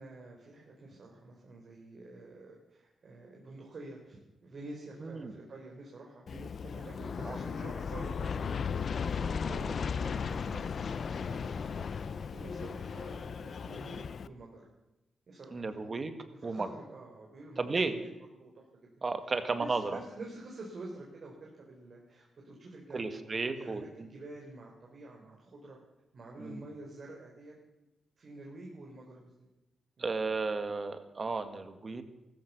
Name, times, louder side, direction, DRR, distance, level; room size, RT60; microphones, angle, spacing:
voice 1, 0.0-6.2 6.6-14.6 15.3-15.9 16.3-18.1 18.4-18.9 19.6-25.8 26.1-27.5 28.2-29.5 30.0-30.2, right 2 dB, 60° right, -1 dB, 4.0 m, -48 dB
voice 2, 5.0-5.3 6.3-6.5 7.2-7.4 10.5-10.6 15.5-16.1 16.4-16.7 17.6-17.9 19.0-20.0 22.9-24.1 26.4-26.6 30.0-32.0, right 3 dB, 45° right, 9 dB, 2.0 m, -34 dB
Aircraft, 6.3-14.3, left 6 dB, 65° left, 0.6 m, -36 dB
15.0 x 14.0 x 6.9 m, 0.99 s
cardioid pair, 55°, 0 cm